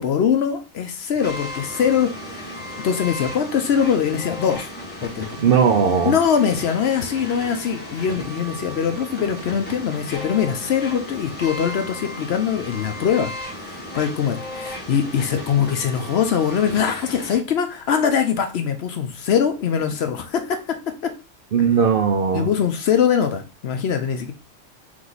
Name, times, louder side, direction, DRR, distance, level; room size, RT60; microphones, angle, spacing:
voice 1, 0.0-4.7 5.0-5.3 6.0-13.3 13.6-20.6 22.3-24.3, left 7 dB, 60° left, 7 dB, 0.8 m, -22 dB
sound 1, 1.2-17.4, equal, 10° left, 1.5 m, -35 dB
voice 2, 5.4-6.2 21.5-22.5, right 6 dB, 60° right, 4 dB, 0.6 m, -18 dB
3.6 x 3.2 x 3.9 m, 0.31 s
omnidirectional pair, 1.3 m